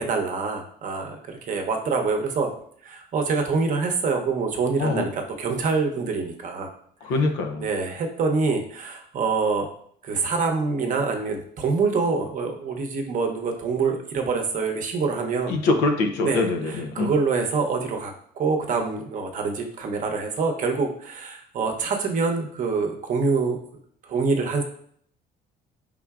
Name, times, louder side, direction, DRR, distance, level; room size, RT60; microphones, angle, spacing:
voice 1, 0.0-2.5 2.8-6.7 7.6-9.7 10.0-15.6 16.2-23.6 24.0-24.6, right 4 dB, 50° right, 3 dB, 0.8 m, -25 dB
voice 2, 7.0-7.7 15.5-17.1, left 3 dB, 85° left, 5 dB, 0.6 m, -23 dB
4.4 x 3.6 x 2.4 m, 0.62 s
cardioid pair, 110°, 17 cm